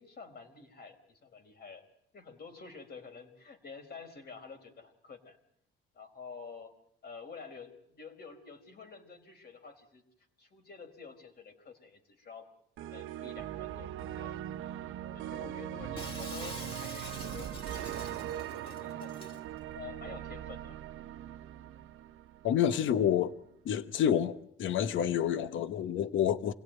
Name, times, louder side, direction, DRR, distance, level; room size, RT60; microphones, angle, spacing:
voice 1, 0.0-1.8 2.1-5.4 5.9-6.7 7.0-10.0 10.4-12.5 12.8-14.4 15.1-19.5 19.7-20.7, left 5 dB, 50° left, 4.5 m, -49 dB
sound 1, 12.8-22.8, right 11 dB, 90° right, 0.9 m, -40 dB
Shatter, 16.0-19.4, left 1 dB, 25° left, 3.2 m, -46 dB
voice 2, 22.4-23.4 23.6-26.5, left 9 dB, 75° left, 1.1 m, -28 dB
27.5 x 18.0 x 9.2 m
cardioid pair, 90°, 20 cm